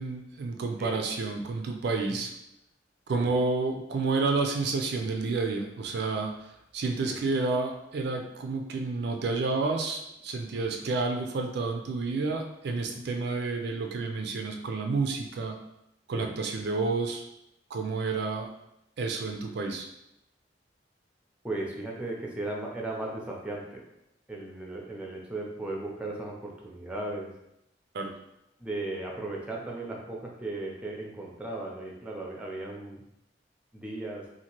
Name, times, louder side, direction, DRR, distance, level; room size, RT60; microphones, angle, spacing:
voice 1, 0.0-2.3 3.1-15.6 16.1-17.2 17.7-18.5 19.0-19.9 27.9-28.1, right 3 dB, 60° right, 4 dB, 0.4 m, -30 dB
voice 2, 10.5-10.9 12.9-13.0 16.1-16.3 21.4-23.8 24.3-27.3 28.6-33.0 33.7-34.2, right 2 dB, 5° right, -2 dB, 0.5 m, -36 dB
2.8 x 2.5 x 2.8 m, 0.82 s
head